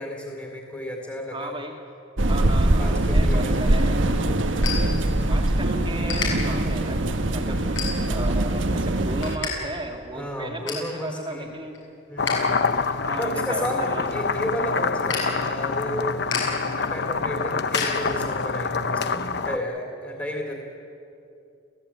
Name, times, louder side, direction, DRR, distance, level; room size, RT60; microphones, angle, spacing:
voice 1, 0.0-1.6 2.8-3.7 4.3-5.2 7.4-7.7 10.1-11.5 12.1-16.1 16.5-20.5, equal, 15° left, -1 dB, 3.1 m, -33 dB
voice 2, 1.3-1.8 2.3-4.0 5.3-7.6 8.0-11.7 13.0-14.1, right 2 dB, 25° right, 1 dB, 2.0 m, -35 dB
sound 1, 2.2-9.4, right 1 dB, 70° right, 1.4 m, -22 dB
sound 2, 3.6-5.6 5.8-6.3 6.9-7.1 7.6-8.3 8.7-9.5 9.8-9.9 10.3-10.9 11.4-12.3 12.7-18.5, left 5 dB, 70° left, 7.3 m, -33 dB
sound 3, 12.2-19.6, left 4 dB, 55° left, 0.9 m, -26 dB
29.5 x 16.5 x 8.7 m, 2.6 s
head